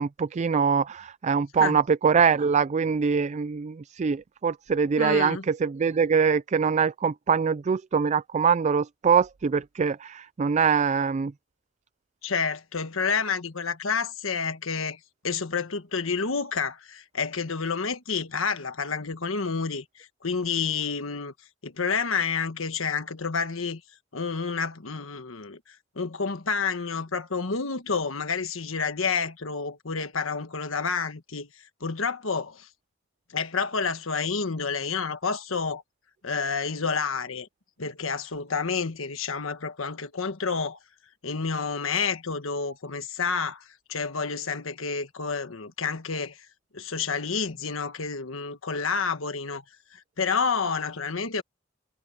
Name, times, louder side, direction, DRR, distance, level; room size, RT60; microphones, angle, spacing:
voice 1, 0.0-11.3, right 6 dB, 35° right, 0.3 m, -23 dB
voice 2, 5.0-5.4 12.2-15.0 15.2-21.3 21.6-23.8 24.1-31.5 31.8-32.7 33.3-35.8 36.2-37.5 37.8-40.8 41.2-46.5 46.7-49.6 49.9-51.4, left 5 dB, 85° left, 1.4 m, -29 dB
head